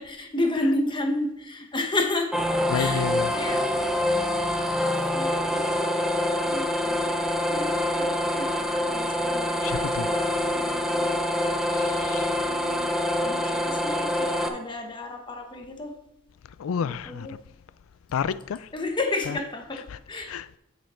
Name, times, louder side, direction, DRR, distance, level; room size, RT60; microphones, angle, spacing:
voice 1, 0.0-2.3 2.7-3.0 3.3-3.6 5.1-6.0 6.5-7.0 7.3-9.6 10.0-10.2 10.5-11.2 12.4-12.9 13.2-15.9 16.8-17.3 18.7-20.3, left 2 dB, 25° left, 1.0 m, -31 dB
sound 1, 2.3-14.5, left 1 dB, 5° right, 0.6 m, -26 dB
voice 2, 2.7-3.3 9.6-10.4 11.7-12.3 16.6-17.4 18.1-18.7 19.3-19.4 19.9-20.0 20.3-20.5, left 7 dB, 80° left, 0.3 m, -30 dB
8.9 x 5.4 x 4.3 m
head